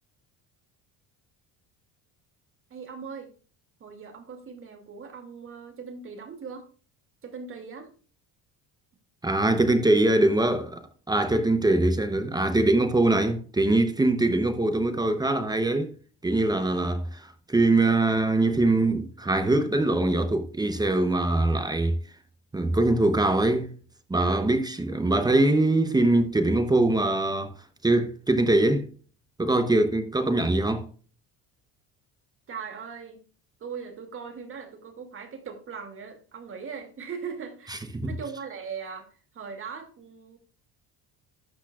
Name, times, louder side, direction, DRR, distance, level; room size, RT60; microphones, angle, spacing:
voice 1, 2.7-3.3 3.8-6.7 7.2-7.9 32.5-33.2 33.6-40.4, right 6 dB, 30° right, 2.4 m, -39 dB
voice 2, 9.2-15.9 16.2-22.0 22.5-23.7 24.1-27.5 27.8-28.9 29.4-30.9 37.9-38.1, right 2 dB, 10° right, 0.7 m, -23 dB
12.5 x 8.2 x 2.3 m
cardioid pair, 165°, 40 cm